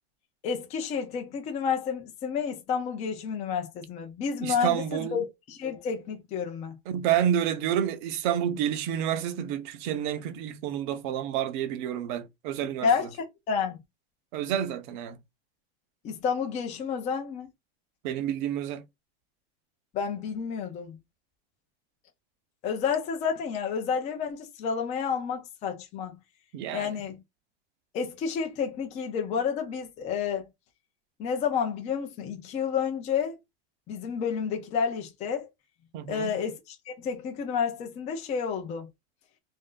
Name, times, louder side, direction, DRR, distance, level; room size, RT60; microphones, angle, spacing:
voice 1, 0.4-6.8 12.8-13.2 13.5-13.8 16.0-17.5 19.9-21.0 22.6-26.2 26.7-27.2 27.9-30.4 31.2-33.4 33.9-35.5 36.1-38.9, left 6 dB, 20° left, 0.5 m, -30 dB
voice 2, 4.4-5.2 6.9-12.9 14.3-15.2 18.0-18.8 26.5-26.9 35.9-36.3, right 10 dB, 45° right, 0.7 m, -29 dB
3.1 x 2.6 x 3.7 m
supercardioid pair, 155°, 33 cm